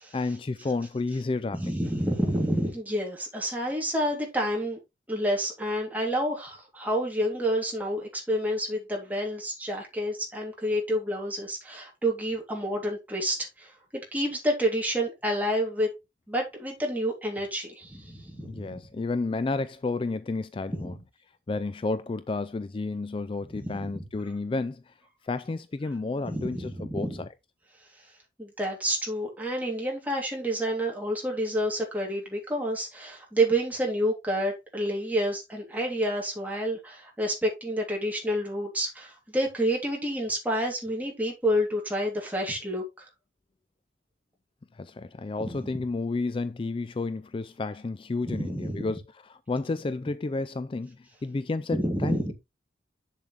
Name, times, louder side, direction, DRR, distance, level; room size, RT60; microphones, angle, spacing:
voice 1, 0.1-1.6 18.4-21.0 21.5-24.9 25.2-27.3 44.7-49.0 49.3-52.3, left 3 dB, 30° left, 0.3 m, -31 dB
voice 2, 1.5-4.8 5.1-13.7 14.1-15.9 16.3-18.8 20.7-20.9 23.5-23.9 26.2-27.2 28.4-43.1 45.4-45.7 48.3-48.9 51.7-52.3, equal, 10° right, 3.0 m, -29 dB
7.5 x 7.2 x 3.3 m
head